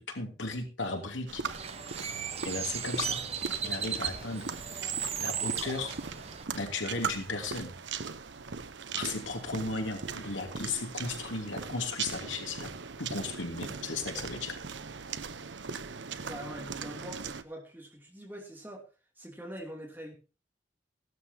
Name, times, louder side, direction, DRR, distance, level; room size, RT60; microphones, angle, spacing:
voice 1, 0.0-1.4 2.4-3.2 3.6-4.5 5.2-6.0 6.5-7.7 8.9-12.7 13.0-14.6, left 3 dB, 90° left, 4 dB, 2.9 m, -35 dB
sound 1, 1.3-17.4, right 5 dB, 75° right, 0.9 m, -40 dB
Bird, 1.4-6.4, right 7 dB, 35° right, 1.0 m, -36 dB
voice 2, 16.2-18.8 19.2-20.1, equal, 10° right, 1 dB, 2.9 m, -44 dB
16.5 x 12.5 x 2.8 m, 0.32 s
head